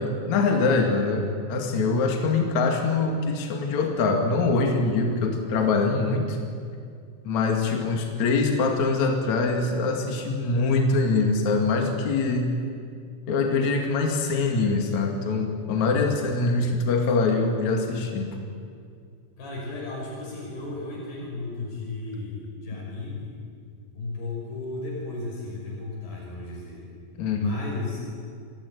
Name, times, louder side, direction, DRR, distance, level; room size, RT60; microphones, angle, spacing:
voice 1, 0.0-6.4 7.2-12.5 13.3-18.3 27.2-27.6, left 3 dB, 50° left, 2 dB, 3.3 m, -24 dB
voice 2, 15.8-16.2 19.4-23.3 23.9-26.8 27.3-28.0, left 2 dB, 80° left, -4 dB, 8.0 m, -34 dB
27.5 x 18.0 x 9.7 m, 2.3 s
omnidirectional pair, 4.5 m